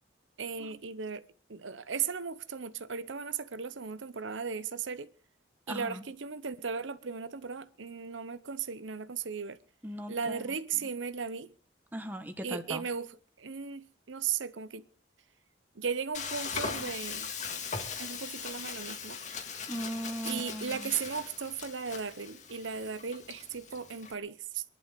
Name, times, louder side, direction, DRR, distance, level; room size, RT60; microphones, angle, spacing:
voice 1, 0.4-5.1 5.7-9.6 10.1-11.5 12.4-14.8 15.7-17.3 18.0-19.2 20.2-24.6, right 6 dB, 85° right, 0.8 m, -36 dB
voice 2, 5.7-6.0 9.8-10.5 10.8-10.9 11.9-12.9 19.7-21.0, equal, 10° right, 1.6 m, -39 dB
Frying (food), 16.1-24.1, left 5 dB, 40° left, 1.9 m, -40 dB
23.0 x 11.5 x 5.2 m
head